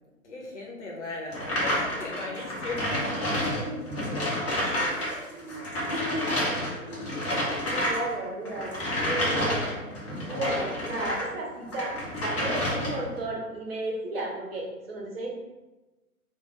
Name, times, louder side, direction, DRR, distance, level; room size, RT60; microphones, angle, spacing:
voice 1, 0.2-4.4 5.0-7.3, left 2 dB, 50° left, -1 dB, 1.0 m, -38 dB
sound 1, 1.3-5.1 5.4-11.3 11.7-13.1, left 1 dB, 20° left, 0.7 m, -29 dB
voice 2, 4.5-5.2 7.3-7.4 7.6-8.7 9.0-9.7 10.3-12.0 12.2-15.3, right 2 dB, 40° right, -2 dB, 0.9 m, -34 dB
3.4 x 2.2 x 3.8 m, 1.1 s
figure-of-eight pair, 130°, 45 cm